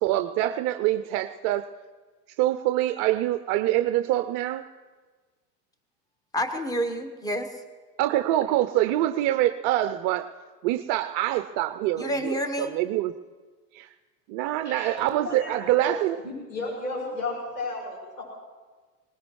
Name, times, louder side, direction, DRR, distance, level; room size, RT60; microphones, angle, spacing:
voice 1, 0.0-1.7 2.4-4.7 8.0-10.3 10.6-13.1 13.7-13.9 14.3-16.2, right 14 dB, 40° right, 10 dB, 0.5 m, -25 dB
voice 2, 6.3-7.5 12.0-12.7, equal, 5° left, 8 dB, 1.1 m, -28 dB
voice 3, 14.6-15.6 15.8-16.0 16.2-18.2, left 2 dB, 85° left, -4 dB, 6.9 m, -33 dB
22.0 x 19.5 x 3.2 m, 1.4 s
hypercardioid pair, 100°, 50 cm